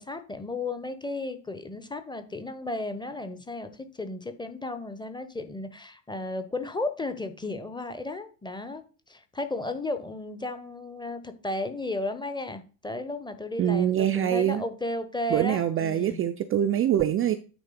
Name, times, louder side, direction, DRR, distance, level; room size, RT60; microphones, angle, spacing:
voice 1, 0.0-16.2, left 2 dB, 10° left, 9 dB, 1.0 m, -34 dB
voice 2, 13.6-14.6 15.3-17.4, right 10 dB, 30° right, 9 dB, 0.5 m, -24 dB
9.0 x 3.5 x 5.1 m, 0.36 s
figure-of-eight pair, 60°, 46 cm